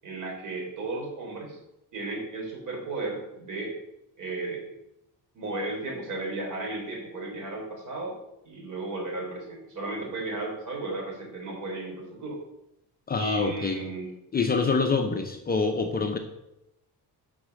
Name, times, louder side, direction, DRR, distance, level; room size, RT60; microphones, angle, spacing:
voice 1, 0.0-1.6 1.9-3.7 4.2-4.7 5.3-8.2 8.4-12.4 13.1-14.1, right 2 dB, 55° right, -1 dB, 3.8 m, -34 dB
voice 2, 13.1-13.8 14.3-16.2, left 4 dB, 25° left, 4 dB, 0.6 m, -26 dB
8.5 x 5.5 x 6.4 m, 0.84 s
cardioid pair, 170°, 37 cm